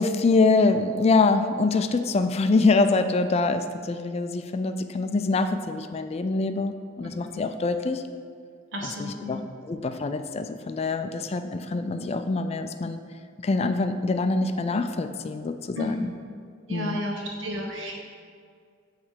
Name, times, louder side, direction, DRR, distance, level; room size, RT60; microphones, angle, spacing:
voice 1, 0.0-8.0 9.0-13.0 13.4-16.1 16.7-17.0, left 3 dB, 35° left, 9 dB, 0.3 m, -25 dB
voice 2, 8.7-9.5 15.7-16.1 16.7-17.9, left 1 dB, 80° right, -1 dB, 1.4 m, -32 dB
8.7 x 3.3 x 6.6 m, 2.1 s
head